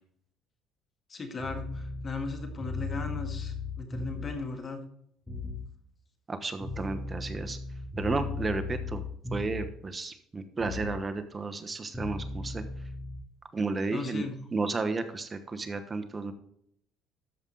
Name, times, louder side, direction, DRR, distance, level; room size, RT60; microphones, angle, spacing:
voice 1, 1.1-4.8 13.9-14.4, left 4 dB, 30° left, 5 dB, 1.8 m, -37 dB
sound 1, 1.4-4.5 5.3-5.7 6.6-9.8 10.6-11.0 11.9-13.2, left 3 dB, 5° left, 2.9 m, -36 dB
voice 2, 6.3-7.6 8.0-9.0 9.3-12.6 13.5-14.2 14.5-16.3, right 3 dB, 20° right, 8 dB, 1.1 m, -32 dB
13.5 x 5.4 x 4.0 m, 0.69 s
cardioid pair, 135°, 0 cm